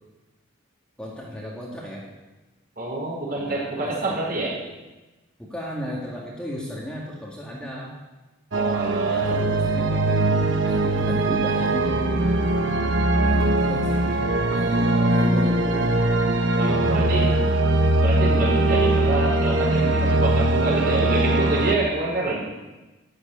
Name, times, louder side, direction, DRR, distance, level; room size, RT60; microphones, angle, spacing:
voice 1, 1.0-2.1 3.3-4.2 5.4-8.0 9.0-12.3 13.1-15.9 16.8-17.4, equal, 5° left, -4 dB, 2.0 m, -35 dB
voice 2, 2.8-4.6 8.5-9.4 16.6-17.3 18.0-22.4, right 2 dB, 45° right, -3 dB, 4.8 m, -27 dB
sound 1, 8.5-21.8, right 2 dB, 60° right, 1.2 m, -21 dB
13.0 x 7.9 x 9.6 m, 1.1 s
head